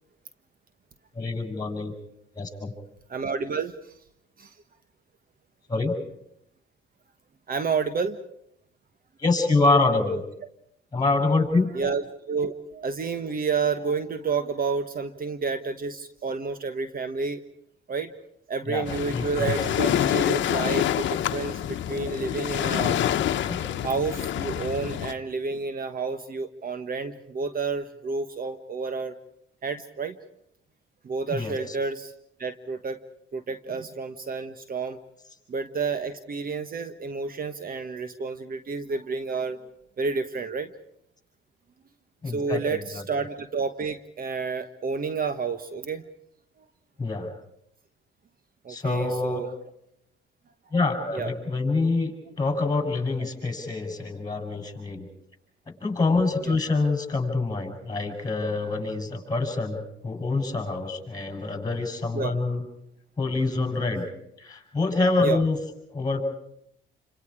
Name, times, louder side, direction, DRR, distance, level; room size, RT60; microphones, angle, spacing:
voice 1, 1.1-1.9 2.3-2.7 5.7-5.9 9.2-10.2 10.9-11.7 18.7-18.9 19.1-19.5 23.4-23.6 31.3-31.8 42.2-43.0 47.0-47.3 48.7-49.4 50.7-55.1 55.8-62.6 63.2-64.0 64.4-65.6 65.9-66.2, left 3 dB, 20° left, 4 dB, 8.0 m, -26 dB
voice 2, 3.1-3.7 4.4-4.5 7.5-8.2 11.7-17.4 17.9-18.1 18.5-23.0 23.8-29.1 29.6-30.1 31.0-32.1 32.4-33.0 33.3-35.0 35.5-39.6 40.0-40.7 42.3-42.8 43.1-46.0 48.6-49.5 51.1-51.3 56.5-56.6 62.1-62.3 65.2-65.4, right 4 dB, 45° right, 10 dB, 1.4 m, -30 dB
Waves surf, 18.9-25.1, left 11 dB, 70° left, 1.1 m, -27 dB
29.0 x 26.0 x 4.9 m, 0.74 s
cardioid pair, 90°, 20 cm